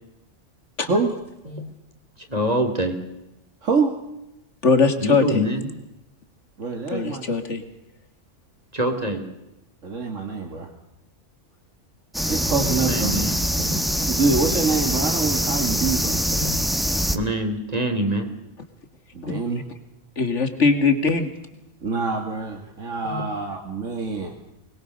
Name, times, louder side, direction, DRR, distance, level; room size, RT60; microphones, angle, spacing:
voice 1, 0.8-1.1 3.6-3.9 6.6-7.2 9.8-10.7 12.3-13.2 14.1-16.2 19.1-19.6 21.8-24.3, right 4 dB, 80° right, 3 dB, 2.5 m, -25 dB
voice 2, 2.3-2.9 5.0-5.7 8.7-9.2 12.8-13.3 13.6-13.8 16.3-16.5 17.1-18.3 23.0-23.2, equal, 30° right, 5 dB, 2.9 m, -25 dB
voice 3, 4.6-5.5 6.9-7.6 13.8-13.9 19.2-19.4 20.2-21.3, left 4 dB, 70° left, 8 dB, 2.7 m, -21 dB
sound 1, 12.1-17.2, equal, ahead, 1.0 m, -24 dB
23.5 x 21.5 x 6.6 m, 0.91 s
omnidirectional pair, 1.3 m